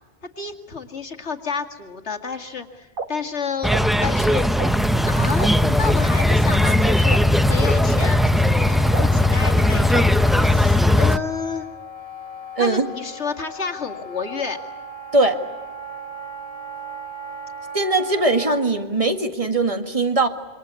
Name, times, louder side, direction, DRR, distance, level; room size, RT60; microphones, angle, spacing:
voice 1, 0.4-3.7 4.0-4.5 5.1-7.2 7.5-10.1 10.4-11.7 12.6-14.6, left 5 dB, 70° left, 4 dB, 2.5 m, -30 dB
sound 1, 3.0-3.1 3.7-3.8 4.6-4.7 5.4-5.5 6.3-6.4 7.1-7.2 8.0-8.1 8.9-9.1 9.9-10.0, right 4 dB, 50° right, 1.9 m, -28 dB
sound 2, 3.6-11.2, left 1 dB, ahead, 0.6 m, -18 dB
Wind instrument woodwind instrument, 6.6-18.6, equal, 30° left, 1.8 m, -38 dB
voice 2, 12.6-12.9 15.1-15.4 17.7-20.3, right 2 dB, 30° right, 7 dB, 2.0 m, -20 dB
27.0 x 25.5 x 8.3 m, 1.3 s
omnidirectional pair, 1.2 m